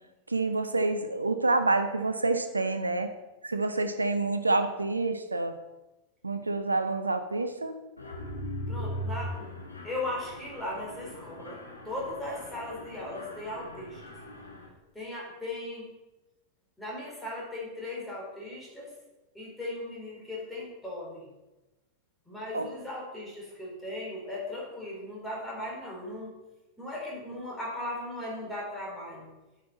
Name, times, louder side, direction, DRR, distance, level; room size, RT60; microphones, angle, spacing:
voice 1, 0.3-3.1 3.4-5.6 6.2-7.8 22.5-22.7, right 3 dB, 80° right, 9 dB, 0.6 m, -28 dB
Mechanisms, 8.0-14.7, equal, 80° left, 1.7 m, -40 dB
voice 2, 8.7-9.5 9.8-14.0 14.9-15.9 16.8-18.9 19.3-21.3 22.3-26.4 26.8-29.3, left 1 dB, 5° left, -4 dB, 3.7 m, -37 dB
9.4 x 7.4 x 4.1 m, 1.1 s
figure-of-eight pair, 90°, 0 cm